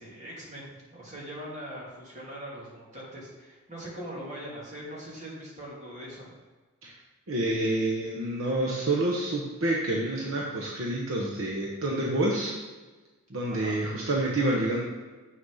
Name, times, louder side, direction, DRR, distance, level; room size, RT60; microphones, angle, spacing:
voice 1, 0.0-6.3 13.5-13.8, equal, 30° right, -5 dB, 3.0 m, -41 dB
voice 2, 7.3-12.5 13.3-14.8, right 1 dB, 60° right, -2 dB, 1.2 m, -28 dB
7.9 x 6.5 x 5.7 m, 1.3 s
head